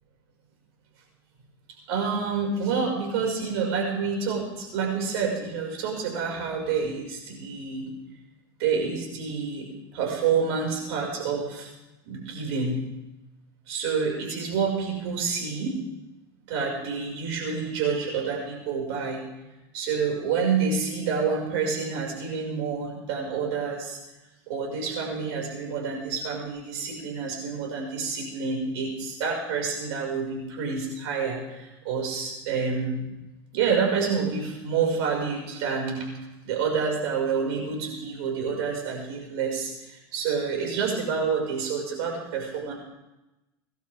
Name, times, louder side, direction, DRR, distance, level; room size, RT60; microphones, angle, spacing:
voice 1, 1.9-7.9 8.6-11.7 12.1-12.8 13.7-15.8 16.5-19.2 19.7-24.0 24.5-33.1 33.5-36.1 36.4-42.7, right 5 dB, 75° right, 0 dB, 5.8 m, -28 dB
24.0 x 12.0 x 3.6 m, 0.97 s
supercardioid pair, 100°, 13 cm